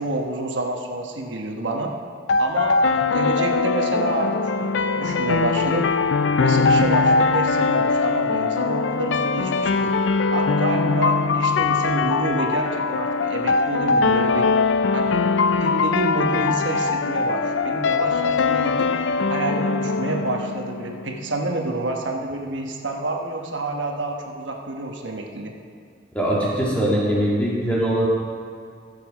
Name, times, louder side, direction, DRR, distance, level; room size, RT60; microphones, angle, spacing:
voice 1, 0.0-1.9 2.4-5.9 6.4-9.9 10.3-14.5 14.9-15.2 15.6-19.0 19.3-25.5, right 2 dB, 85° right, 2 dB, 1.2 m, -28 dB
sound 1, 2.3-21.2, left 4 dB, 85° left, 0.4 m, -21 dB
voice 2, 26.1-28.1, right 1 dB, 5° left, -6 dB, 2.3 m, -21 dB
15.5 x 7.0 x 4.8 m, 2.2 s
head